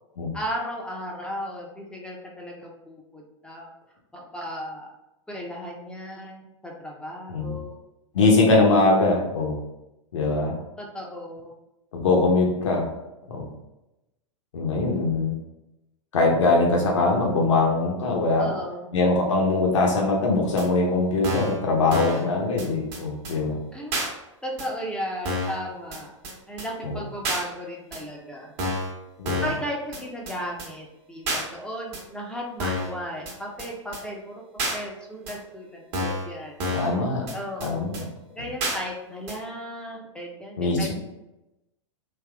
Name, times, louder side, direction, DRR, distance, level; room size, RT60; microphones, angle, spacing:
voice 1, 0.3-3.7 4.3-4.9 5.3-7.8 10.8-11.5 18.4-18.9 23.7-24.0 24.4-26.1 26.5-28.5 29.4-34.4 34.7-36.6 37.3-38.0 38.3-40.9, equal, 5° left, -2 dB, 0.5 m, -35 dB
voice 2, 8.1-9.6 10.1-10.5 11.9-12.8 13.3-13.5 14.5-15.3 16.1-18.5 18.9-23.6 26.8-26.9 29.2-29.4 36.7-37.2 37.6-38.0 40.6-40.9, left 3 dB, 70° left, 0 dB, 0.7 m, -22 dB
sound 1, 20.6-20.7 21.2-21.6 21.9-22.2 22.6-22.7 22.9-23.0 23.2-23.3 23.9-24.1 24.6-24.7 25.2-25.6 25.9-26.0 26.2-26.3 26.6-26.7 27.2-27.4 27.9-28.0 28.6-28.9 29.2-29.6 29.9-30.0 30.3-30.4 30.6-30.7 31.3-31.4 31.9-32.0 32.6-32.9 33.3-33.4 33.6-33.7 33.9-34.0 34.6-34.8 35.3-35.4 35.9-36.3 36.6-36.9 37.3-37.4 37.6-37.7 37.9-38.0 38.6-38.8 39.3-39.4, equal, 45° right, 1.1 m, -28 dB
3.5 x 2.8 x 2.3 m, 0.94 s
figure-of-eight pair, 100°, 16 cm